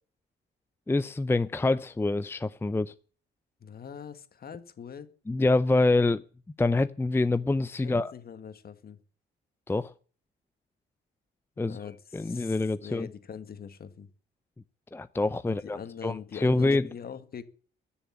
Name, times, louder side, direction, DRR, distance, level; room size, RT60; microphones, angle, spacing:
voice 1, 0.9-2.9 5.3-6.2 6.6-8.1 9.7-9.9 11.6-11.8 12.1-13.1 14.9-16.9, left 2 dB, 10° left, 13 dB, 0.6 m, -26 dB
voice 2, 3.6-5.1 7.8-9.0 11.6-14.1 15.4-17.4, left 7 dB, 50° left, 10 dB, 1.9 m, -43 dB
14.5 x 7.1 x 9.9 m, 0.43 s
cardioid pair, 90°, 20 cm